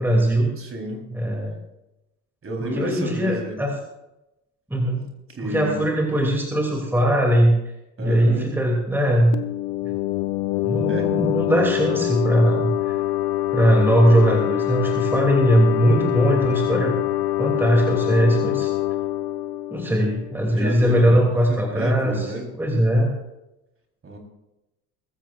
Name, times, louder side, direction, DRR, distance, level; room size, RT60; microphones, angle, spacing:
voice 1, 0.0-0.5 1.1-1.6 2.6-3.7 4.7-5.0 5.4-7.6 8.0-9.3 10.6-12.9 13.5-17.0 17.4-18.7 19.7-22.3 22.6-23.1, right 1 dB, 5° right, 0 dB, 2.9 m, -20 dB
voice 2, 0.6-1.1 2.4-3.6 5.3-5.9 8.0-8.5 10.9-11.1 20.5-21.2 21.5-22.5 24.0-24.2, right 1 dB, 30° right, 1 dB, 4.1 m, -30 dB
sound 1, 9.3-20.8, left 16 dB, 55° left, 0.8 m, -25 dB
21.0 x 15.0 x 2.6 m, 0.93 s
hypercardioid pair, 65°, 44 cm